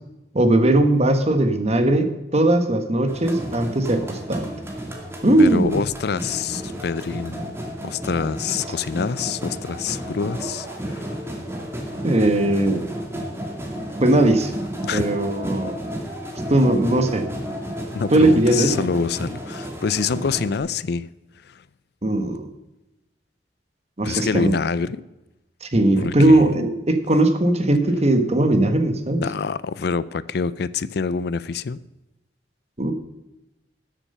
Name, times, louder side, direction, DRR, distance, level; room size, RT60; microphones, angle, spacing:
voice 1, 0.3-4.5 5.2-5.8 12.0-12.9 14.0-14.5 14.9-15.8 16.5-17.3 18.1-18.9 22.0-22.5 24.0-24.5 25.6-29.2 32.8-32.9, right 1 dB, 40° right, 1.3 m, -19 dB
sound 1, 3.1-20.6, equal, 15° right, 2.2 m, -32 dB
voice 2, 5.4-7.5 7.8-11.2 14.8-15.0 17.9-21.1 21.4-21.6 24.0-25.0 26.0-26.7 29.2-31.8, left 5 dB, 65° left, 0.5 m, -26 dB
13.5 x 7.5 x 5.5 m
head